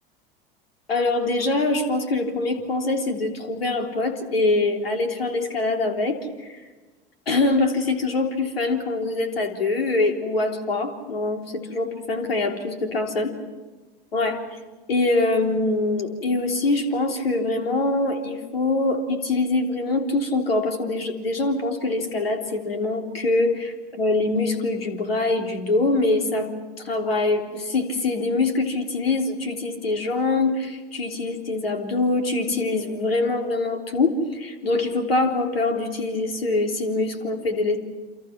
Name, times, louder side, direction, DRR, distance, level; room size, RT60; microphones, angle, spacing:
voice 1, 0.9-6.2 6.5-6.6 7.3-13.3 14.1-14.4 14.9-26.5 26.8-37.8, left 2 dB, 85° left, 4 dB, 3.5 m, -24 dB
29.0 x 27.5 x 6.0 m, 1.3 s
hypercardioid pair, 85°, 29 cm